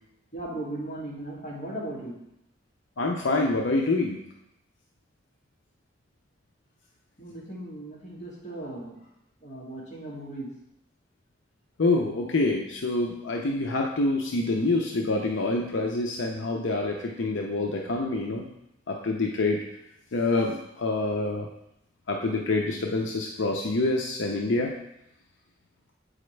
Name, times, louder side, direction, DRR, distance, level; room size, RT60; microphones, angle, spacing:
voice 1, 0.3-2.2 7.2-9.0 9.4-10.5, right 1 dB, 40° left, -6 dB, 2.1 m, -37 dB
voice 2, 3.0-4.2 11.8-18.4 18.9-19.6 20.1-21.5 22.1-24.7, left 2 dB, 85° left, 1 dB, 0.6 m, -26 dB
7.7 x 4.9 x 3.2 m, 0.82 s
head